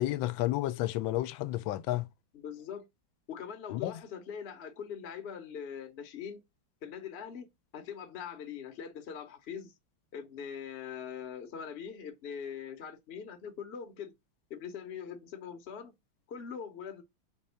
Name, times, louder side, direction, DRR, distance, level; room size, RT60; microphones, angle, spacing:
voice 1, 0.0-2.1 3.7-3.9, left 15 dB, 85° left, 1.3 m, -31 dB
voice 2, 2.3-2.9 3.3-6.4 6.8-7.5 7.7-9.7 10.1-14.1 14.5-15.9 16.3-17.0, left 7 dB, 45° left, 0.8 m, -42 dB
5.2 x 3.2 x 5.6 m
omnidirectional pair, 2.1 m